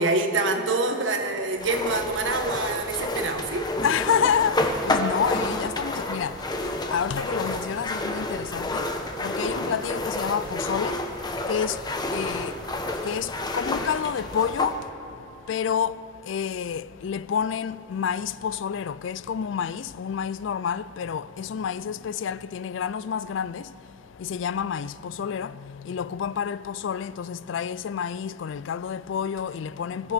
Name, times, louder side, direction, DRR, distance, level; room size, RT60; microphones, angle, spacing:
voice 1, 0.0-3.7, right 2 dB, 75° right, 1.5 m, -26 dB
sound 1, 1.6-14.8, left 1 dB, 20° left, 1.0 m, -29 dB
voice 2, 3.8-30.1, left 7 dB, 70° left, 0.3 m, -29 dB
21.0 x 13.5 x 5.1 m
head